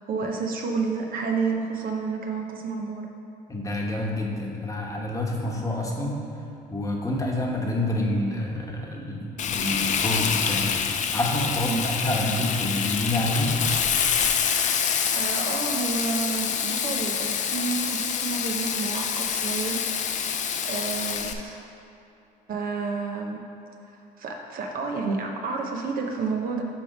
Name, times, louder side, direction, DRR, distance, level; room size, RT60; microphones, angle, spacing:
voice 1, 0.0-3.1 11.6-11.8 14.6-19.8 20.7-21.6 22.5-23.4 24.2-26.6, right 4 dB, 60° right, 2 dB, 0.9 m, -30 dB
voice 2, 3.5-6.2 6.7-10.8 11.1-13.5, left 1 dB, 20° left, -1 dB, 1.1 m, -28 dB
Frying (food), 9.4-21.3, left 7 dB, 45° left, 0.5 m, -26 dB
10.0 x 3.5 x 5.1 m, 2.8 s
cardioid pair, 110°, 17 cm